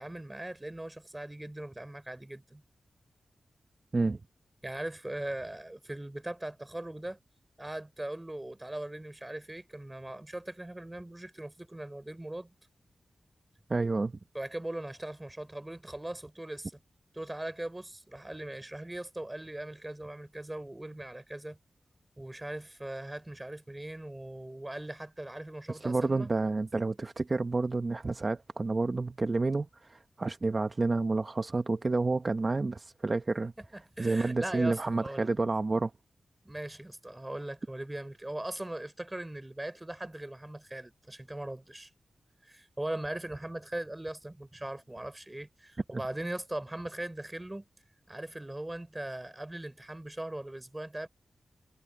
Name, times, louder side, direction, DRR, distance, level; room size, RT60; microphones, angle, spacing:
voice 1, 0.0-2.6 4.6-7.2 7.6-12.5 14.3-16.7 17.1-21.6 22.2-26.3 33.7-35.3 36.4-41.9 42.4-47.7 48.1-51.1, right 1 dB, 20° right, 3.7 m, -40 dB
voice 2, 13.7-14.2 25.7-33.5 34.0-35.9, right 3 dB, 40° right, 0.9 m, -29 dB
cardioid pair, 65°, 0 cm